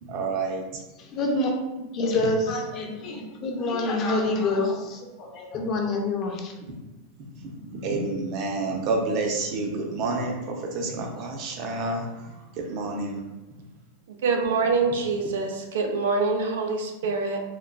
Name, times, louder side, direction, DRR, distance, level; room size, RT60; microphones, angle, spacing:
voice 1, 0.0-0.6 6.7-6.8 7.3-13.2, right 3 dB, 40° right, 0.5 m, -29 dB
voice 2, 1.0-6.5, left 2 dB, 30° left, 0.4 m, -27 dB
voice 3, 14.1-17.4, right 4 dB, 85° right, 0.5 m, -25 dB
3.8 x 2.2 x 2.2 m
supercardioid pair, 165°, 0 cm